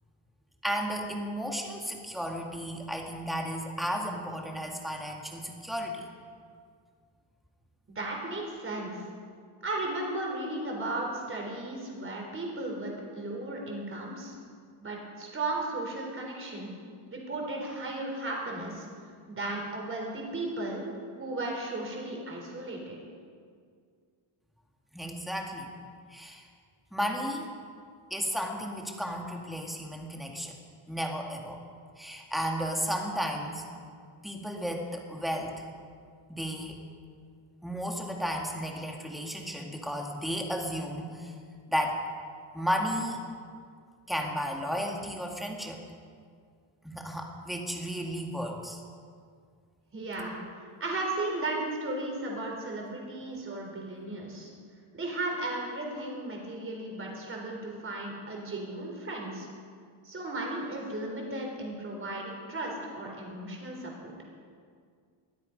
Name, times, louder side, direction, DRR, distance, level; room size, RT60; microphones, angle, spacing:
voice 1, 0.6-6.1 24.9-25.7 26.1-26.5 26.9-27.5 28.1-30.5 30.9-31.6 32.0-33.7 34.2-35.6 36.3-36.8 37.6-41.3 41.7-42.0 42.5-43.2 44.1-45.8 46.8-48.8, equal, ahead, 1 dB, 2.0 m, -33 dB
voice 2, 7.9-9.1 9.6-14.4 14.8-16.7 17.1-18.9 19.3-20.8 21.2-23.0 49.9-50.4 50.8-54.5 54.9-59.5 60.0-64.1, right 2 dB, 25° right, 0 dB, 4.2 m, -35 dB
21.0 x 12.5 x 5.3 m, 2.1 s
cardioid pair, 145°, 48 cm